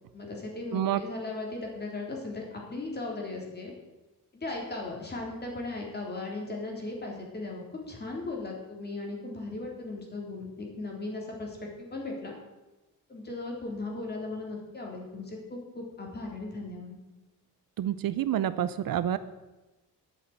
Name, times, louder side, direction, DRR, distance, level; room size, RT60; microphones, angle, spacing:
voice 1, 0.1-3.7 4.3-12.3 13.1-17.0, left 2 dB, 25° left, -1 dB, 3.8 m, -37 dB
voice 2, 17.8-19.2, right 11 dB, 65° right, 14 dB, 0.7 m, -28 dB
11.0 x 8.5 x 8.8 m, 1.1 s
cardioid pair, 140°, 37 cm